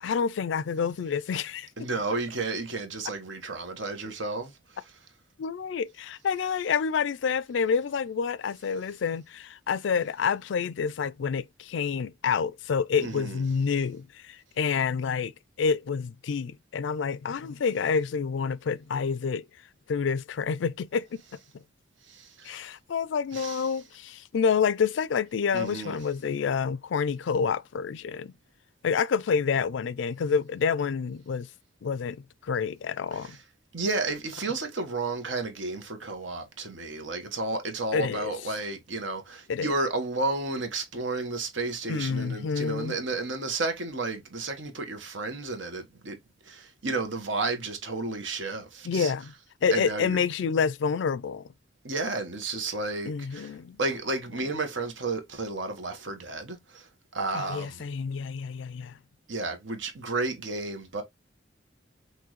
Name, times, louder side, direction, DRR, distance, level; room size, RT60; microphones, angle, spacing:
voice 1, 0.0-1.7 5.4-15.3 15.6-19.5 19.9-21.2 22.4-28.3 28.8-31.5 31.8-33.4 37.9-38.3 39.5-39.7 41.9-43.0 48.8-49.3 49.6-51.5 53.1-53.8 54.4-54.5 57.3-58.9, left 6 dB, 75° left, 0.4 m, -28 dB
voice 2, 1.8-4.5 13.0-13.4 22.1-22.6 23.3-23.7 25.5-26.0 33.1-33.4 33.7-46.2 46.4-49.1 49.7-50.2 51.8-53.5 53.8-57.8 59.3-61.0, right 3 dB, 75° right, 1.3 m, -32 dB
6.0 x 2.6 x 3.0 m
head